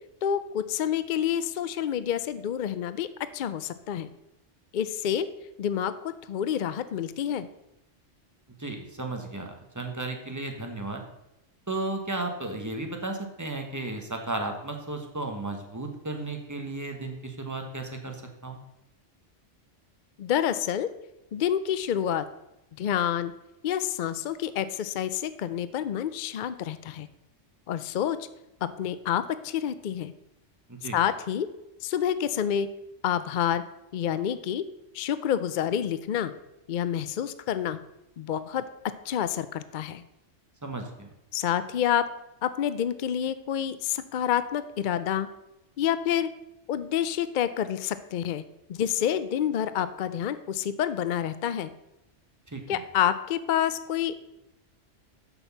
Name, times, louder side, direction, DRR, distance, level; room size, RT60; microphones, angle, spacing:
voice 1, 0.2-3.1 3.3-4.1 4.7-5.3 5.6-7.5 20.2-20.9 21.3-22.2 22.8-23.3 23.6-27.1 27.7-28.2 28.6-30.1 30.9-31.5 31.8-32.7 33.0-33.6 33.9-34.7 34.9-36.3 36.7-37.8 38.2-38.6 39.1-40.0 41.3-42.1 42.4-45.3 45.8-46.3 46.7-48.4 48.7-51.7 52.7-54.2, left 9 dB, 55° left, 13 dB, 0.5 m, -28 dB
voice 2, 8.6-11.0 11.7-18.6 30.7-31.0 40.6-41.1 52.5-52.8, right 2 dB, 15° right, 3 dB, 1.2 m, -34 dB
7.1 x 6.3 x 6.9 m, 0.89 s
omnidirectional pair, 1.2 m